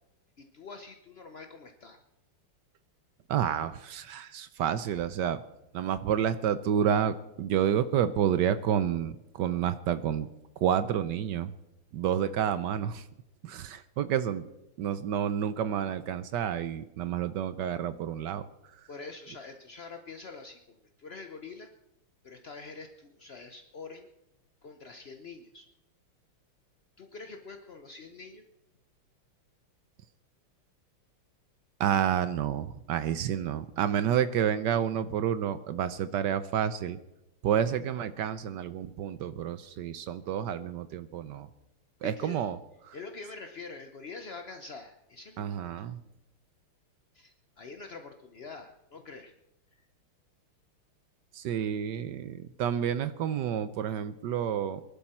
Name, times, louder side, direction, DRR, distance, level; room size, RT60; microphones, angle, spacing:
voice 1, 0.4-2.0 18.9-21.7 22.2-24.1 24.6-25.7 27.0-28.4 42.0-42.4 42.9-45.7 47.1-49.3, left 4 dB, 60° left, 5 dB, 0.6 m, -45 dB
voice 2, 3.3-5.4 5.7-10.3 10.6-11.5 11.9-13.0 13.4-14.4 14.8-18.4 18.7-18.8 31.8-37.0 37.4-41.5 42.0-42.6 42.8-43.0 45.4-46.0 51.3-54.8, right 9 dB, 70° right, 13 dB, 1.1 m, -29 dB
22.0 x 12.0 x 4.3 m, 0.90 s
omnidirectional pair, 2.4 m